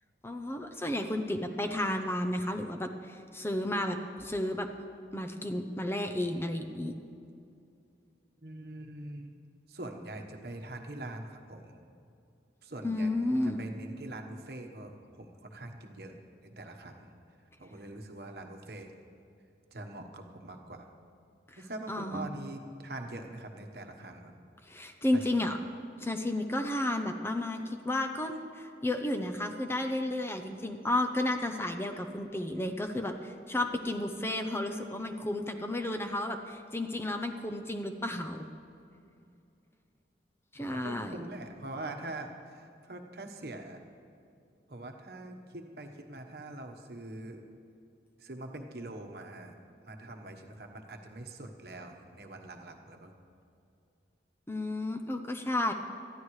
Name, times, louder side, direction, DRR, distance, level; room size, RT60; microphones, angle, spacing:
voice 1, 0.2-4.7 5.1-6.9 12.8-13.6 21.5-21.6 21.9-22.3 24.6-25.6 26.0-38.5 40.5-41.2 54.5-55.7, left 1 dB, 15° left, 5 dB, 0.6 m, -32 dB
voice 2, 8.4-9.3 9.7-11.8 12.6-17.1 17.6-18.9 19.7-20.9 21.6-24.4 25.1-25.5 40.6-43.8 44.7-47.4 48.2-49.5 49.8-53.1, right 2 dB, 60° right, 4 dB, 1.2 m, -43 dB
20.5 x 13.5 x 3.2 m, 2.5 s
head